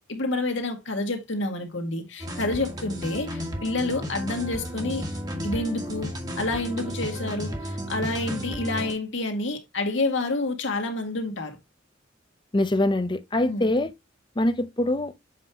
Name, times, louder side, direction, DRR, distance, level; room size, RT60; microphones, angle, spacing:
voice 1, 0.1-5.0 5.4-11.6 13.5-13.7, left 2 dB, 70° left, 2.0 m, -29 dB
sound 1, 2.2-8.9, equal, 20° right, 1.6 m, -33 dB
voice 2, 12.5-13.9 14.4-15.1, left 1 dB, 25° left, 0.7 m, -24 dB
7.7 x 5.3 x 2.9 m
head